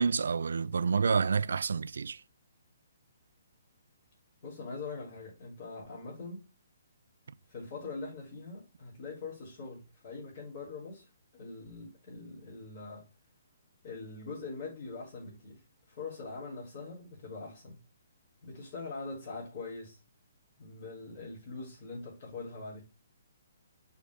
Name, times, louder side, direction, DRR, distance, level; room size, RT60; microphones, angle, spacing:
voice 1, 0.0-2.2, right 5 dB, 80° right, 0.4 m, -28 dB
voice 2, 4.4-6.4 7.5-11.1 11.3-13.1 13.8-17.8 18.4-20.0 20.6-22.8, left 3 dB, 35° left, 4.3 m, -43 dB
6.9 x 4.4 x 4.9 m
hypercardioid pair, 170°, 0 cm